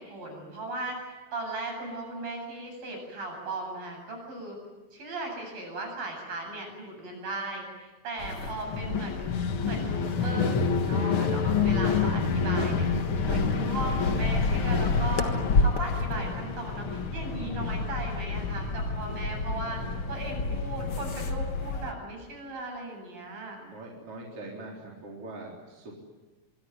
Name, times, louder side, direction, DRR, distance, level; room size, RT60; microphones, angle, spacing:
voice 1, 0.0-4.6 4.9-9.4 9.6-15.3 15.6-19.8 20.1-23.6, right 2 dB, 55° right, 2 dB, 9.9 m, -37 dB
sound 1, 8.2-21.9, left 4 dB, 60° left, 1.4 m, -28 dB
voice 2, 8.3-9.0 15.1-15.6 19.4-20.3 23.6-25.9, right 2 dB, 35° right, -2 dB, 4.6 m, -44 dB
25.0 x 24.0 x 9.6 m, 1.2 s
omnidirectional pair, 4.8 m